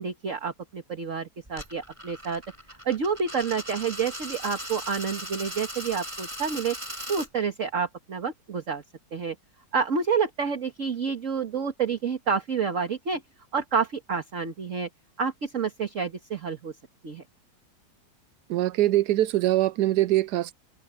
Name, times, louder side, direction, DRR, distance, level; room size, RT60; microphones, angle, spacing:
voice 1, 0.0-2.4 2.9-6.8 7.1-8.8 9.1-9.4 9.7-13.2 13.5-14.9 15.2-16.7 17.0-17.2, right 6 dB, 45° right, 1.9 m, -29 dB
Coin (dropping), 1.5-7.3, equal, 15° right, 7.4 m, -38 dB
voice 2, 18.5-20.5, right 15 dB, 70° right, 1.1 m, -23 dB
open air
omnidirectional pair, 1.9 m